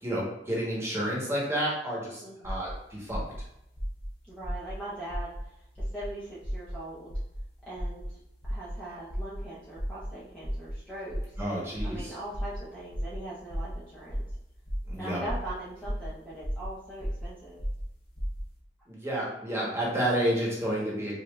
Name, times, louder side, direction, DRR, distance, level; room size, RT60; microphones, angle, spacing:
voice 1, 0.0-3.2 11.4-12.1 14.9-15.2 18.9-21.1, right 1 dB, 15° right, -5 dB, 1.3 m, -30 dB
voice 2, 2.2-2.6 4.3-7.2 7.7-8.2 8.5-11.2 11.8-14.2 15.0-17.6, right 1 dB, 5° left, -10 dB, 0.9 m, -41 dB
sound 1, 2.4-2.7 3.1-3.4 3.7-4.1 4.4-4.7 5.1-5.4 5.8-6.1 6.4-6.7 7.1-7.4 7.7-8.1 8.4-8.7 9.1-9.4 9.7-10.1 10.4-10.7 11.1-11.4 11.7-12.0 12.3-12.6 12.9-13.2 13.5-13.8 14.1-14.3 14.7-14.9 15.2-15.5 15.8-16.1 16.4-16.7 17.0-17.2 17.6-17.8 18.1-18.4, equal, 35° left, 1.1 m, -34 dB
5.1 x 2.8 x 2.5 m, 0.82 s
head